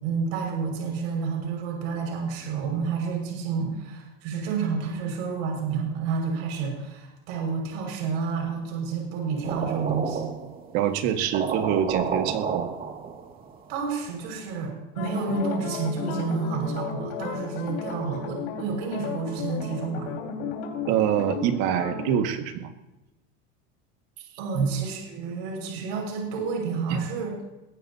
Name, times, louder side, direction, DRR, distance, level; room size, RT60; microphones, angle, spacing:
voice 1, 0.0-10.3 13.7-20.1 24.4-27.4, right 5 dB, 80° right, 0 dB, 6.0 m, -30 dB
sound 1, 9.4-10.7 11.0-11.1 11.3-13.6, right 6 dB, 30° right, 2.3 m, -31 dB
voice 2, 10.7-12.7 20.9-22.7 24.5-24.7 26.9-27.0, right 9 dB, 60° right, 6 dB, 1.9 m, -25 dB
sound 2, 15.0-22.2, left 5 dB, 75° left, 4.6 m, -34 dB
22.0 x 16.0 x 2.9 m, 0.98 s
supercardioid pair, 150°, 31 cm